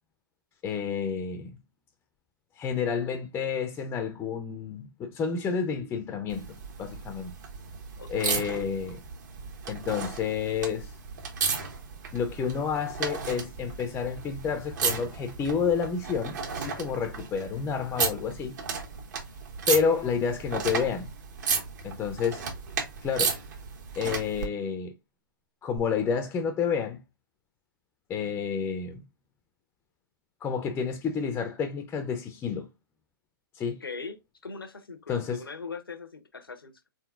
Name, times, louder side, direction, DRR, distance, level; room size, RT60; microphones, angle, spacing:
voice 1, 0.6-1.6 2.6-6.5 6.8-7.3 8.1-9.0 9.7-10.9 12.1-18.6 19.7-21.1 21.8-22.4 23.0-23.4 24.0-24.9 25.6-27.0 28.1-29.0 30.4-32.7 33.5-33.8 35.1-35.4, left 6 dB, 15° left, 0.6 m, -29 dB
sound 1, 6.3-24.5 25.8-25.9, right 6 dB, 55° right, 1.4 m, -34 dB
voice 2, 8.0-8.7 33.8-34.2 34.4-36.9, left 4 dB, 85° left, 0.9 m, -40 dB
4.1 x 3.9 x 2.3 m
figure-of-eight pair, 120°, 12 cm